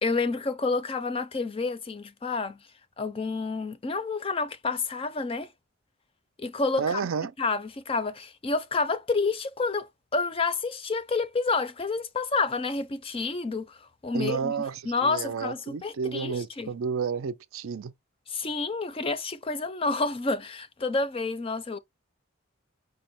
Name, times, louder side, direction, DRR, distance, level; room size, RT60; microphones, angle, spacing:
voice 1, 0.0-2.6 3.0-5.5 6.4-7.0 7.4-14.5 14.9-16.7 18.3-21.8, left 3 dB, 25° left, 0.4 m, -29 dB
voice 2, 6.8-7.3 14.1-17.9, right 6 dB, 75° right, 0.5 m, -31 dB
5.2 x 2.1 x 4.0 m
head